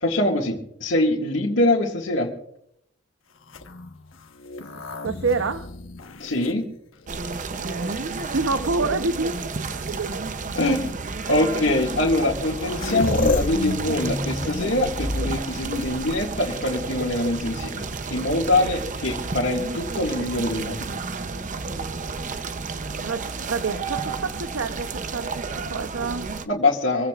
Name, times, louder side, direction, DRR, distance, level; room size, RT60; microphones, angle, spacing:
voice 1, 0.0-2.3 6.2-6.7 10.6-17.8 18.1-20.9 26.5-27.1, left 2 dB, 70° left, -4 dB, 2.1 m, -24 dB
sound 1, 3.4-7.3 8.0-8.7 9.8-9.9 10.6-10.8 11.9-12.0 12.2-16.7 18.6-19.3, left 2 dB, 85° left, 1.2 m, -31 dB
voice 2, 5.0-5.7 7.5-10.2 23.0-26.3, right 3 dB, 80° right, 9 dB, 0.8 m, -28 dB
sound 2, 7.1-26.5, right 4 dB, 40° right, 0.7 m, -31 dB
26.0 x 15.5 x 2.5 m, 0.71 s
head